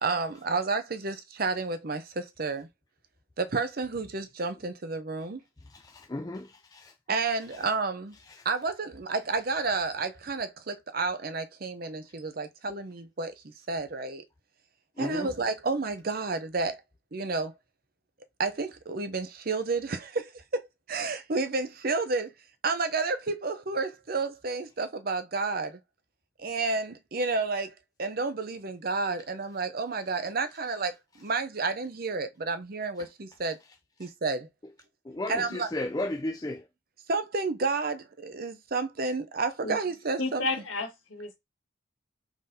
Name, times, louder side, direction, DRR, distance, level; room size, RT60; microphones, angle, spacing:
voice 1, 0.0-2.7 3.4-5.4 7.1-8.2 8.4-13.3 13.7-14.2 15.0-16.8 17.1-17.5 18.4-20.6 20.9-22.3 22.6-25.8 26.4-27.7 28.0-33.6 34.0-34.5 35.3-35.7 37.1-40.5, right 3 dB, 45° right, 0.6 m, -30 dB
voice 2, 5.8-6.9 15.0-15.3 35.1-36.6, left 1 dB, 20° left, 0.4 m, -34 dB
voice 3, 40.2-41.4, left 3 dB, 70° left, 1.8 m, -32 dB
5.1 x 3.7 x 2.7 m
head